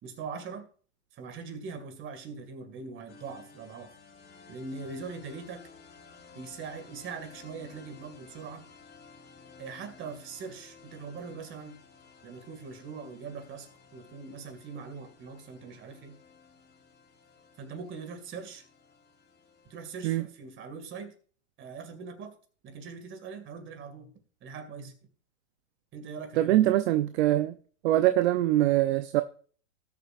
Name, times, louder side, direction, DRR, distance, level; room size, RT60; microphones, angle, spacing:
voice 1, 0.0-0.7 1.2-3.9 4.5-5.7 6.3-8.6 9.6-11.8 12.2-16.2 17.6-18.6 19.7-21.1 21.6-22.3 22.6-24.1 24.4-24.9 25.9-26.7, right 5 dB, 30° right, 2.4 m, -41 dB
sound 1, 3.1-20.0, left 5 dB, 25° left, 3.6 m, -54 dB
voice 2, 26.3-27.6 27.8-29.2, right 14 dB, 55° right, 0.8 m, -23 dB
19.0 x 7.1 x 2.6 m
hypercardioid pair, 115°, 40 cm